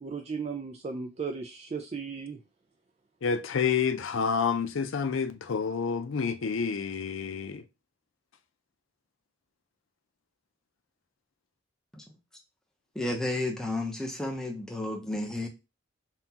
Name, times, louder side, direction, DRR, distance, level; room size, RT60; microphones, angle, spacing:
voice 1, 0.0-2.4, right 5 dB, 35° right, 0.3 m, -36 dB
voice 2, 3.2-7.6, left 6 dB, 85° left, 0.5 m, -29 dB
voice 3, 12.9-15.5, left 2 dB, 5° left, 0.7 m, -32 dB
5.6 x 2.3 x 2.8 m
head